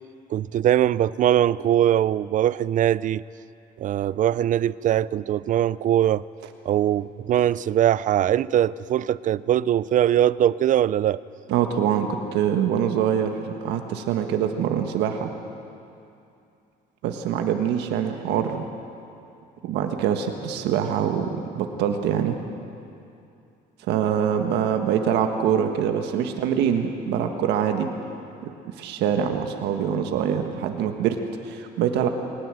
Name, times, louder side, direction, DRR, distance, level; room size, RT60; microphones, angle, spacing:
voice 1, 0.3-3.2 3.8-6.2 6.7-11.2, right 11 dB, 50° right, 19 dB, 0.5 m, -21 dB
voice 2, 11.5-15.3 17.0-18.7 19.6-22.3 23.9-27.9 28.4-32.1, right 8 dB, 85° right, 5 dB, 1.5 m, -24 dB
20.0 x 20.0 x 7.7 m, 2.6 s
cardioid pair, 110°, 17 cm